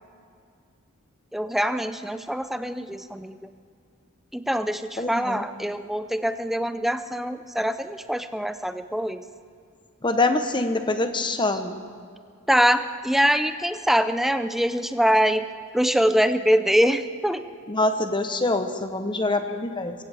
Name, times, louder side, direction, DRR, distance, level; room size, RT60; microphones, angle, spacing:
voice 1, 1.3-3.4 4.3-9.2 11.4-11.5 12.5-15.5 15.7-17.4, equal, ahead, 10 dB, 0.4 m, -23 dB
voice 2, 5.0-5.4 10.0-11.8 17.7-19.9, left 2 dB, 20° left, 7 dB, 0.9 m, -25 dB
23.0 x 15.5 x 3.5 m, 2.3 s
head